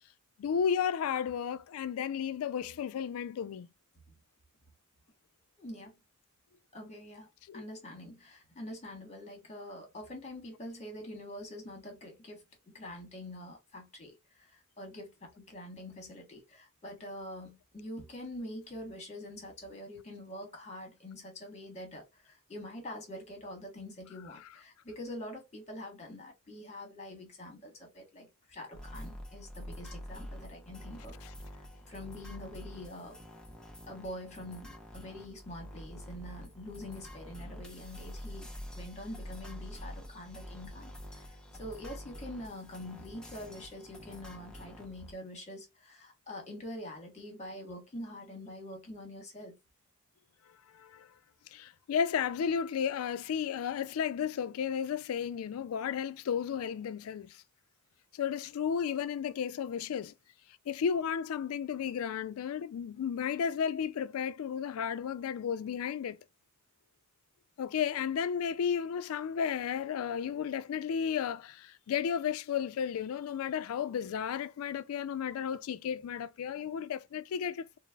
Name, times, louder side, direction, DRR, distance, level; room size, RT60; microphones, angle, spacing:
voice 1, 0.4-3.7 7.5-7.6 50.7-51.1 51.5-57.4 58.1-60.1 60.7-66.2 67.6-77.8, left 7 dB, 85° left, 0.3 m, -33 dB
voice 2, 5.6-6.0 6.7-31.2 31.5-33.2 33.9-49.6, left 1 dB, 35° left, 1.1 m, -45 dB
sound 1, 28.7-45.1, equal, 5° left, 0.7 m, -46 dB
3.8 x 2.0 x 2.2 m
head